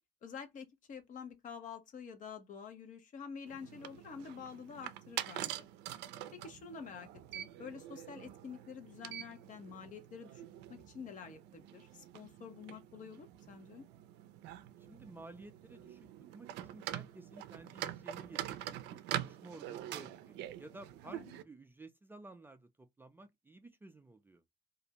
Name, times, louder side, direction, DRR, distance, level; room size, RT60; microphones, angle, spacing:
voice 1, 0.2-5.7 6.3-7.1 7.3-13.9 21.1-21.3, left 6 dB, 50° left, 0.8 m, -48 dB
sound 1, 3.5-21.4, right 12 dB, 85° right, 0.4 m, -45 dB
voice 2, 14.8-16.1 16.3-24.4, right 2 dB, 10° right, 0.4 m, -54 dB
2.5 x 2.1 x 2.8 m
cardioid pair, 110°, 17 cm